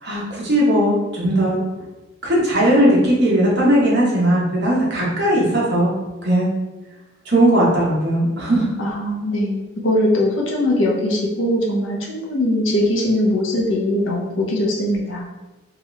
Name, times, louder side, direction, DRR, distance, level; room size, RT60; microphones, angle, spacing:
voice 1, 0.0-1.6 2.2-5.9 6.2-6.5 7.3-8.7, right 1 dB, 55° right, -5 dB, 1.0 m, -17 dB
voice 2, 8.8-15.3, left 1 dB, 70° left, -2 dB, 0.7 m, -21 dB
2.8 x 2.4 x 3.1 m, 1.1 s
head